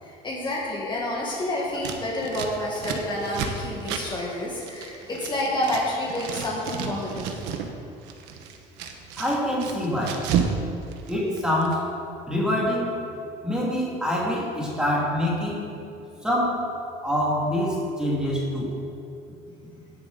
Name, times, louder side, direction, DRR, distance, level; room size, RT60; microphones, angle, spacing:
voice 1, 0.0-7.3, left 1 dB, 25° left, -4 dB, 1.7 m, -29 dB
Scissors, 1.7-5.8 6.1-7.7 8.0-10.6 10.8-11.7, right 7 dB, 85° right, 1.2 m, -31 dB
voice 2, 9.2-10.2 11.1-11.9 12.3-13.1 13.4-15.7 16.2-16.7 17.0-18.7, left 1 dB, 5° right, -5 dB, 2.6 m, -25 dB
17.5 x 6.9 x 4.1 m, 2.7 s
cardioid pair, 140°, 17 cm